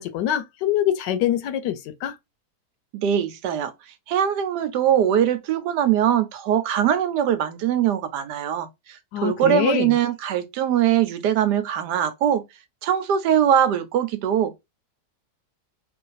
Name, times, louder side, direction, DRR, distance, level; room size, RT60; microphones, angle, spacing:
voice 1, 0.0-2.2 9.1-10.0, left 11 dB, 80° left, 1.2 m, -24 dB
voice 2, 2.9-3.7 4.1-12.4 12.8-14.6, right 10 dB, 75° right, 1.2 m, -22 dB
3.1 x 2.5 x 3.9 m
omnidirectional pair, 1.9 m